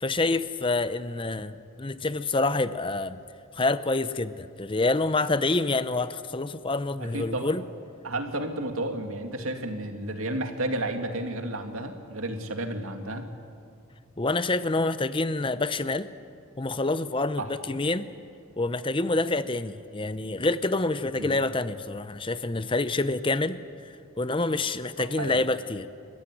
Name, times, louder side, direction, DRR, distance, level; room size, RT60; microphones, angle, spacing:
voice 1, 0.0-3.2 3.5-7.6 14.2-16.1 16.6-18.1 18.6-23.6 23.8-25.9, left 2 dB, 25° left, 13 dB, 0.7 m, -27 dB
voice 2, 7.0-7.5 8.0-13.3 17.4-17.5 21.2-21.3 25.0-25.4, right 1 dB, 85° right, 5 dB, 2.3 m, -32 dB
29.5 x 15.0 x 10.0 m, 2.4 s
head